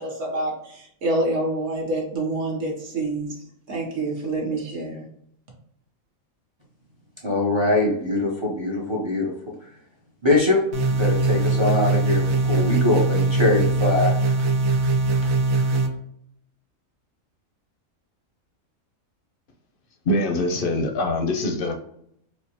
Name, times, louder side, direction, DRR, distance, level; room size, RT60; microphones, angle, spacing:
voice 1, 0.0-3.3 3.7-5.1, right 2 dB, 60° right, -2 dB, 1.2 m, -27 dB
voice 2, 7.2-9.3 10.2-10.6 10.9-14.1, left 2 dB, 35° right, -2 dB, 0.5 m, -22 dB
sound 1, 10.7-15.9, right 3 dB, 80° right, 1.1 m, -21 dB
voice 3, 20.1-21.7, left 1 dB, 60° left, 5 dB, 0.6 m, -23 dB
4.2 x 2.2 x 2.8 m, 0.72 s
omnidirectional pair, 1.4 m